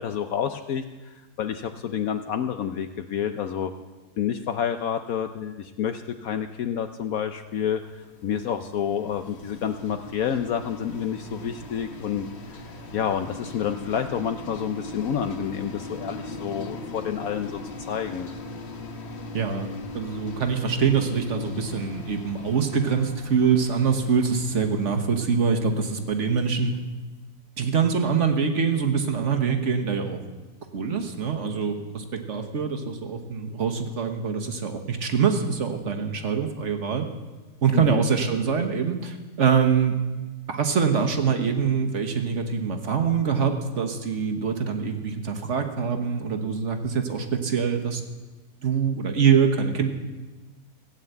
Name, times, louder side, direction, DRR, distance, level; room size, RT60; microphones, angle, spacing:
voice 1, 0.0-3.7 4.2-17.6 17.9-18.3 37.7-38.0, left 8 dB, 70° left, 7 dB, 1.1 m, -29 dB
sound 1, 7.8-26.8, left 2 dB, 45° left, 1.4 m, -40 dB
voice 2, 19.3-19.7 19.9-26.7 27.6-30.2 30.7-37.1 37.6-39.9 40.5-48.0 48.6-49.9, right 6 dB, 50° right, 6 dB, 1.5 m, -24 dB
16.0 x 9.1 x 8.1 m, 1.2 s
omnidirectional pair, 1.7 m